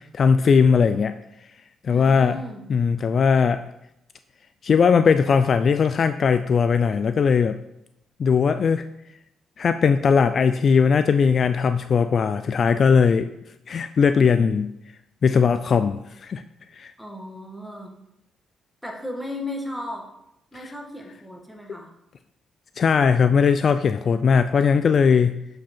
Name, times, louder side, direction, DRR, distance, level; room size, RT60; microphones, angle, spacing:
voice 1, 0.1-1.1 1.8-2.4 2.7-3.6 4.6-7.6 8.2-8.8 9.6-13.3 13.7-14.7 15.2-16.4 16.7-16.9 22.8-25.4, left 6 dB, 50° left, 11 dB, 0.3 m, -19 dB
voice 2, 1.9-2.6 17.0-17.9 18.8-20.0 20.5-21.9, left 1 dB, ahead, 0 dB, 1.5 m, -35 dB
7.4 x 4.9 x 4.4 m, 0.83 s
cardioid pair, 90°, 0 cm